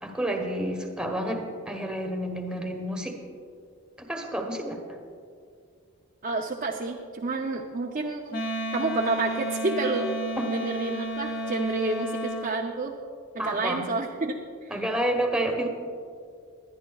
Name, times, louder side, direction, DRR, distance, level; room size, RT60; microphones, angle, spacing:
voice 1, 0.0-3.2 4.0-4.8 10.4-10.5 13.4-13.8 14.7-15.7, right 1 dB, 5° right, 2 dB, 1.1 m, -29 dB
voice 2, 6.2-8.4 8.7-10.1 10.5-13.0 13.3-14.4, right 3 dB, 35° right, 0 dB, 0.6 m, -29 dB
Wind instrument woodwind instrument, 8.3-12.5, equal, 40° left, 1.4 m, -32 dB
21.5 x 10.5 x 2.4 m, 2.3 s
head